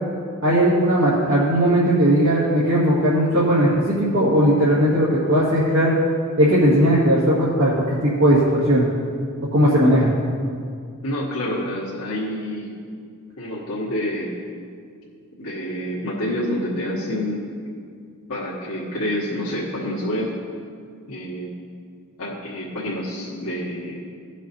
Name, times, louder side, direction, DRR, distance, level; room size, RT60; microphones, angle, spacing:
voice 1, 0.4-5.9 6.4-8.8 9.5-10.1, equal, 65° right, -9 dB, 1.9 m, -18 dB
voice 2, 11.0-12.7 13.4-14.3 15.4-17.4 18.3-20.3 21.1-21.5 22.2-24.0, left 1 dB, 80° left, -7 dB, 1.6 m, -27 dB
17.0 x 6.2 x 2.8 m, 2.2 s
head